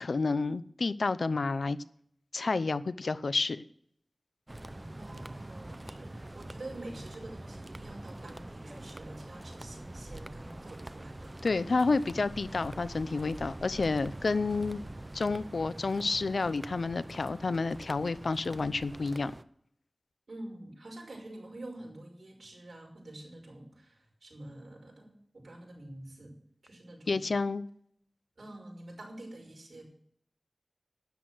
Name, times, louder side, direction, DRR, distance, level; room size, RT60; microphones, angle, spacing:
voice 1, 0.0-1.8 2.3-3.6 11.4-14.8 15.1-19.3 27.1-27.6, left 3 dB, 90° left, 0.6 m, -30 dB
sound 1, 4.5-19.4, right 1 dB, 30° right, 0.7 m, -45 dB
voice 2, 5.0-11.3 20.3-26.4 26.6-27.3 28.4-29.8, right 1 dB, 80° right, 5.7 m, -47 dB
12.5 x 10.0 x 6.1 m
wide cardioid pair, 65°, 0 cm